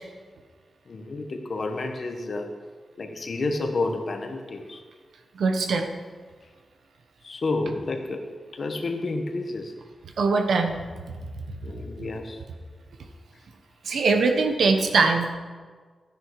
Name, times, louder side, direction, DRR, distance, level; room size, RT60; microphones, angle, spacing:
voice 1, 0.9-2.6 3.0-4.8 7.2-8.2 8.5-9.8 11.6-12.4, left 3 dB, 45° left, 5 dB, 1.3 m, -30 dB
voice 2, 5.3-5.9 10.2-10.8 13.8-15.3, right 4 dB, 80° right, 5 dB, 1.2 m, -21 dB
13.5 x 9.7 x 4.8 m, 1.5 s
wide cardioid pair, 165°, 0 cm